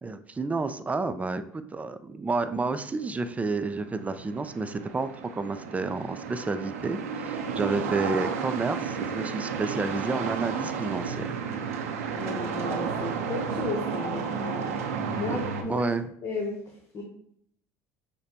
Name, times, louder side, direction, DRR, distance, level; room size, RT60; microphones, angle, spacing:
voice 1, 0.0-11.4 15.3-15.4 15.7-16.0, right 3 dB, 20° right, 10 dB, 0.3 m, -30 dB
sound 1, 2.5-15.6, right 6 dB, 85° right, 0.5 m, -32 dB
voice 2, 12.1-15.8 16.2-17.0, left 3 dB, 45° left, 0 dB, 0.8 m, -34 dB
6.5 x 2.2 x 2.8 m, 0.67 s
hypercardioid pair, 75°, 8 cm